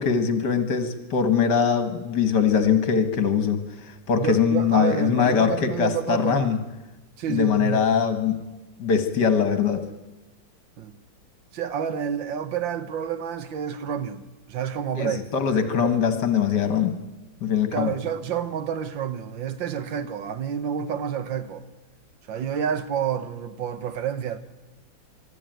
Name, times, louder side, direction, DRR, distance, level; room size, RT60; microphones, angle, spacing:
voice 1, 0.0-3.6 4.1-6.6 7.3-8.4 8.8-9.8 14.9-16.9 17.4-17.9, left 7 dB, 60° left, 2.2 m, -22 dB
voice 2, 4.2-6.5 7.2-7.9 10.8-11.0 11.5-14.2 14.5-16.1 17.7-21.6 22.3-24.4, right 8 dB, 75° right, 1.8 m, -29 dB
24.0 x 12.5 x 9.2 m
omnidirectional pair, 2.1 m